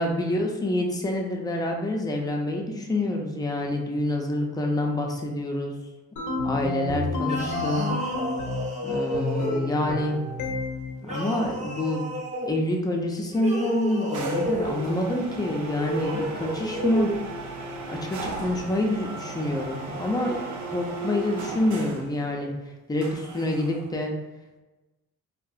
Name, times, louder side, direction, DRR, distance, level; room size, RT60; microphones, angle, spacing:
voice 1, 0.0-5.7 6.4-7.9 8.8-10.2 11.1-12.1 12.5-17.1 17.9-20.4 20.7-22.5 22.9-24.1, left 1 dB, 15° left, 1 dB, 0.4 m, -27 dB
sound 1, 6.2-8.8 9.1-11.0, left 3 dB, 75° left, 0.5 m, -30 dB
sound 2, 7.2-10.0 11.0-12.5 13.3-14.8 15.7-17.2, right 1 dB, 25° right, 0.7 m, -31 dB
sound 3, 14.1-22.1 23.0-23.9, right 2 dB, 70° right, 0.6 m, -36 dB
2.8 x 2.4 x 2.3 m, 1.1 s
cardioid pair, 90°, 30 cm